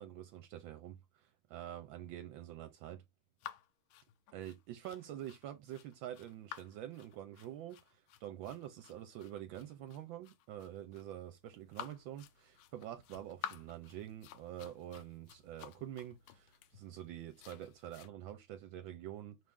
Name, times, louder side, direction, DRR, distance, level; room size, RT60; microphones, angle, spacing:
voice 1, 0.0-3.0 4.3-19.4, right 11 dB, 80° right, 1.3 m, -47 dB
sound 1, 3.4-18.1, left 10 dB, 85° left, 1.4 m, -52 dB
6.0 x 2.5 x 3.6 m
omnidirectional pair, 2.2 m